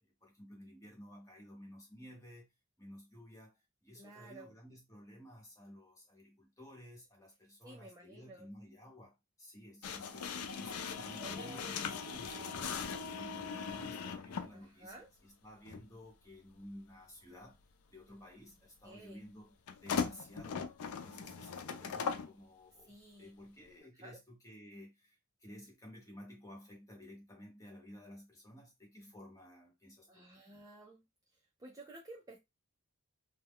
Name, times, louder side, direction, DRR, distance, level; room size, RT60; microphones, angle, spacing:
voice 1, 0.0-2.5 2.8-12.9 13.1-17.6 17.9-19.6 19.8-20.6 20.9-30.3, equal, 15° left, 1.0 m, -54 dB
voice 2, 4.0-4.5 7.6-8.5 11.2-12.5 14.5-15.1 18.8-19.2 22.9-23.3 24.0-24.2 30.1-31.0 31.3-32.4, right 2 dB, 15° right, 0.4 m, -53 dB
sound 1, 9.8-14.5 15.7-15.8 19.7-22.3, left 6 dB, 85° left, 0.4 m, -39 dB
2.2 x 2.2 x 3.5 m
head